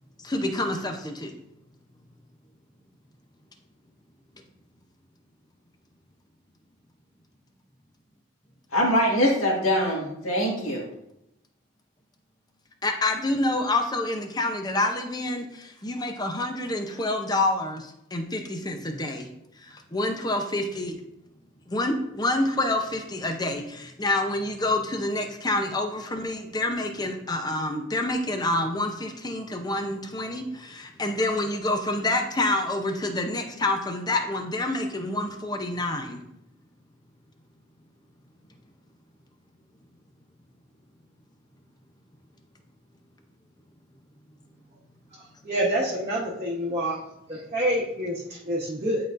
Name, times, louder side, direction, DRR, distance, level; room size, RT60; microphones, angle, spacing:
voice 1, 0.2-1.3 12.8-19.3 19.6-21.0 21.7-36.2, left 2 dB, 20° left, 4 dB, 0.6 m, -27 dB
voice 2, 8.7-10.9, equal, 80° left, -3 dB, 1.8 m, -23 dB
voice 3, 45.1-47.0 47.3-49.0, right 1 dB, 30° right, -8 dB, 1.0 m, -27 dB
10.5 x 3.9 x 2.5 m, 0.81 s
head